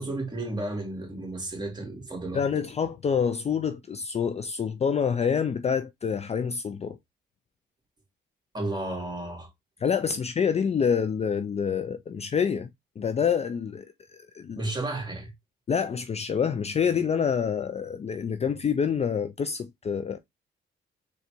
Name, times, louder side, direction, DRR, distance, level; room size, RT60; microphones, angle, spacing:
voice 1, 0.0-2.4 8.5-9.5 14.6-15.3, right 2 dB, 20° right, 2.0 m, -33 dB
voice 2, 2.3-7.0 9.8-12.7 13.0-13.9 14.3-14.6 15.7-20.2, left 7 dB, 35° left, 0.5 m, -27 dB
3.9 x 2.4 x 4.4 m
cardioid pair, 90°, 20 cm